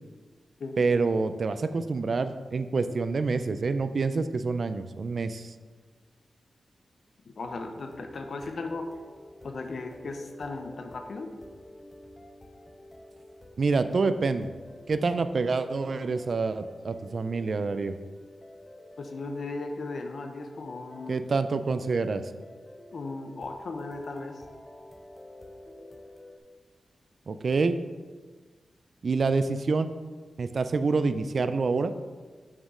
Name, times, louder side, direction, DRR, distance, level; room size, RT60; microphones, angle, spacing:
voice 1, 0.8-5.5 13.6-14.5 14.9-17.9 21.1-22.2 27.3-27.8 29.0-29.9 30.4-31.9, right 4 dB, 55° right, 11 dB, 0.3 m, -27 dB
voice 2, 7.4-8.9 9.4-11.3 19.0-21.2 22.9-24.4, left 3 dB, 60° left, 6 dB, 0.6 m, -36 dB
sound 1, 7.4-26.4, left 1 dB, 20° left, 0.6 m, -49 dB
6.5 x 6.0 x 3.7 m, 1.4 s
wide cardioid pair, 105°, 0 cm